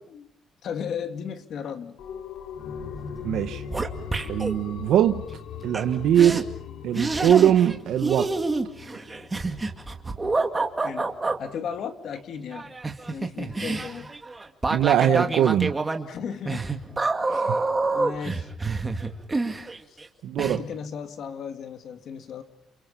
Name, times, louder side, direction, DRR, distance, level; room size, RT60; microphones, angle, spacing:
voice 1, 0.6-1.9 10.8-11.1 11.4-12.7 13.1-14.1 15.1-15.4 16.1-16.7 17.3-18.5 19.9-20.0 20.4-22.4, left 7 dB, 60° left, 2.5 m, -35 dB
sound 1, 2.0-11.3 11.7-11.8, left 7 dB, 75° left, 2.6 m, -40 dB
sound 2, 2.8-3.1 3.3-4.6 5.7-5.8 6.2-6.4 7.0-7.8 8.0-11.4 12.5-20.1 20.4-20.6, right 3 dB, 15° right, 2.2 m, -27 dB
voice 2, 3.2-3.6 4.3-5.2 5.6-6.5 6.8-8.3 14.7-15.7 17.3-17.6 20.2-20.6, right 10 dB, 75° right, 1.0 m, -21 dB
30.0 x 28.5 x 5.8 m
cardioid pair, 145°, 0 cm